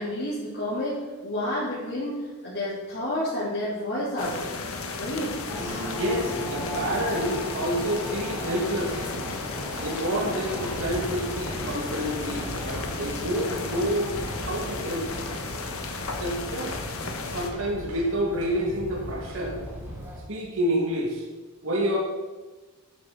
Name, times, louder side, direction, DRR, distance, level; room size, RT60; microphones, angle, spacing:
voice 1, 0.0-4.5 4.9-5.8, left 1 dB, 50° left, -11 dB, 3.9 m, -30 dB
sound 1, 4.2-17.5, left 4 dB, 75° left, 1.5 m, -35 dB
sound 2, 5.5-20.2, left 1 dB, 10° right, 3.7 m, -37 dB
voice 2, 6.0-9.1 9.8-15.1 16.2-16.9 17.3-19.6 20.3-21.3 21.6-22.0, equal, 65° right, -2 dB, 2.4 m, -28 dB
sound 3, 10.6-20.1, equal, 90° right, 4.2 m, -40 dB
12.0 x 11.0 x 4.2 m, 1.3 s
head